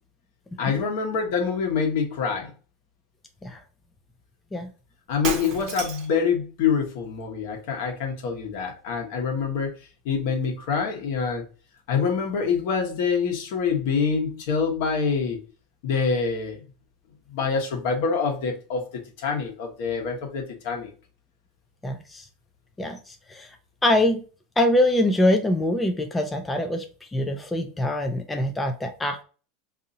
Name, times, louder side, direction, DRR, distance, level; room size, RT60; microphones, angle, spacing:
voice 1, 0.6-2.5 5.1-9.7 10.0-11.4 11.9-15.4 15.8-16.6 17.3-20.9, left 5 dB, 70° left, 2 dB, 1.0 m, -26 dB
Shatter, 5.1-6.2, right 6 dB, 45° right, 0.8 m, -31 dB
voice 2, 21.8-22.2 22.8-23.0 23.3-23.5 23.8-24.2 24.6-26.8 27.1-29.2, left 1 dB, 10° left, 5 dB, 0.4 m, -23 dB
2.7 x 2.6 x 3.9 m, 0.36 s
supercardioid pair, 145°, 0 cm